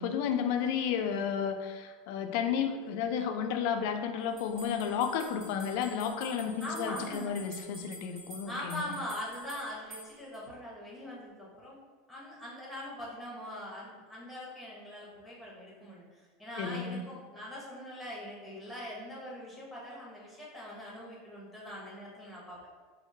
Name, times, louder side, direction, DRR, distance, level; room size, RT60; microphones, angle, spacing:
voice 1, 0.0-8.9 16.6-17.0, left 7 dB, 65° left, 6 dB, 0.3 m, -32 dB
sound 1, 4.4-10.4, right 1 dB, 45° right, 1.0 m, -49 dB
voice 2, 6.6-7.3 8.5-11.8 12.1-22.6, equal, 5° left, -6 dB, 0.9 m, -42 dB
3.5 x 2.0 x 2.6 m, 1.4 s
supercardioid pair, 125°, 0 cm